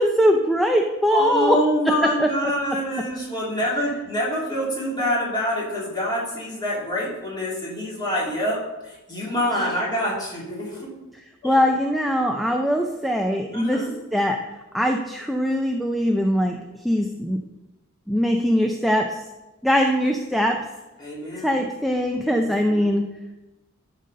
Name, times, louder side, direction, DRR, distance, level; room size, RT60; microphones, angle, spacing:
voice 1, 0.0-1.6 2.2-2.3 11.1-13.9 14.1-16.6 16.8-17.4 18.1-19.2 19.6-20.6 21.4-23.1, equal, ahead, 2 dB, 0.5 m, -21 dB
voice 2, 1.1-8.6 8.8-10.9 11.4-11.5 13.5-13.9 21.0-21.5 22.5-22.8, equal, 20° left, -5 dB, 2.6 m, -26 dB
11.0 x 4.1 x 5.3 m, 1.1 s
head